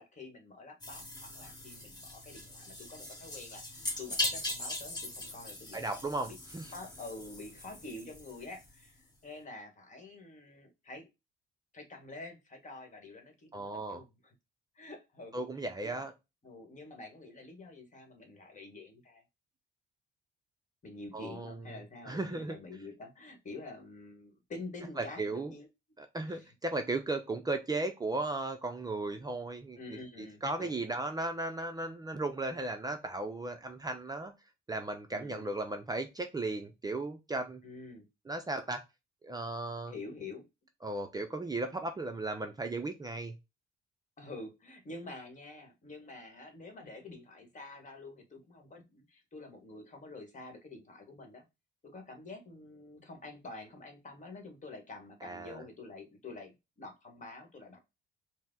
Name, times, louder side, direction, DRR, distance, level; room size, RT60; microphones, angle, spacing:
voice 1, 0.0-6.0 6.3-6.4 6.6-11.1 11.7-14.3 14.7-16.1 16.4-19.2 20.8-25.7 26.2-26.5 29.8-30.8 35.1-35.5 37.6-38.1 39.9-40.4 44.2-51.4 51.8-57.8, left 2 dB, 40° left, 4 dB, 1.4 m, -48 dB
sound 1, 0.8-8.9, left 2 dB, 20° left, 1.4 m, -40 dB
voice 2, 5.7-6.7 13.5-14.0 15.3-16.1 21.1-21.6 22.1-22.6 25.0-25.5 26.0-29.8 30.2-34.3 34.7-37.6 38.3-38.8 39.2-39.9 40.8-43.4 55.2-55.6, right 2 dB, 20° right, 6 dB, 0.5 m, -36 dB
4.6 x 2.1 x 3.7 m, 0.24 s
cardioid pair, 90°, 20 cm